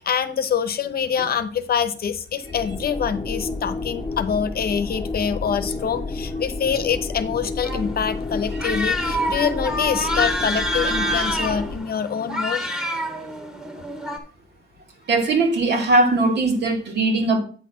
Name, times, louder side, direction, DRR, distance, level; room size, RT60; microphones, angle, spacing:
voice 1, 0.0-12.6, left 7 dB, 50° left, 11 dB, 0.9 m, -25 dB
sound 1, 2.4-11.8, left 3 dB, 15° left, 1.3 m, -30 dB
sound 2, 7.6-14.2, equal, 5° right, 2.0 m, -27 dB
voice 2, 15.1-17.4, right 2 dB, 60° right, 2 dB, 2.6 m, -20 dB
8.9 x 4.1 x 6.3 m, 0.42 s
cardioid pair, 90°, 20 cm